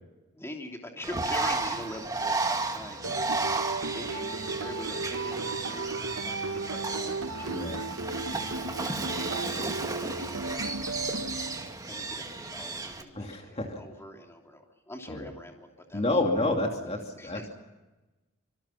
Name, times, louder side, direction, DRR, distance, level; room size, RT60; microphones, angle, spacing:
voice 1, 0.3-3.6 4.0-5.9 6.2-7.8 8.6-11.1 11.9-16.0 17.2-17.5, left 1 dB, 15° left, 2 dB, 3.0 m, -44 dB
Bird, 1.0-13.0, right 3 dB, 20° right, 2.0 m, -33 dB
sound 1, 3.0-12.0, right 3 dB, 85° right, 1.1 m, -35 dB
voice 2, 7.5-7.8 13.2-13.8 15.1-15.3 15.9-17.5, left 2 dB, 30° left, 2 dB, 2.7 m, -29 dB
26.0 x 24.5 x 5.8 m, 1.1 s
head